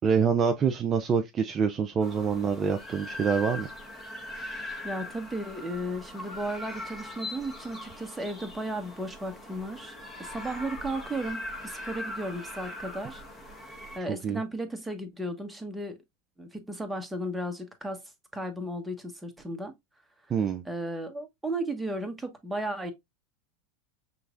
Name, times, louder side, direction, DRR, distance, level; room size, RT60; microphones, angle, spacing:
voice 1, 0.0-3.7 14.1-14.4 20.3-20.6, right 6 dB, 30° right, 0.5 m, -26 dB
sound 1, 2.0-14.0, left 1 dB, 20° left, 1.3 m, -41 dB
voice 2, 4.8-13.2 13.7-16.0 16.4-18.0 18.3-19.7 20.6-22.9, right 1 dB, 5° right, 1.1 m, -35 dB
5.7 x 3.1 x 2.5 m
hypercardioid pair, 100°, 0 cm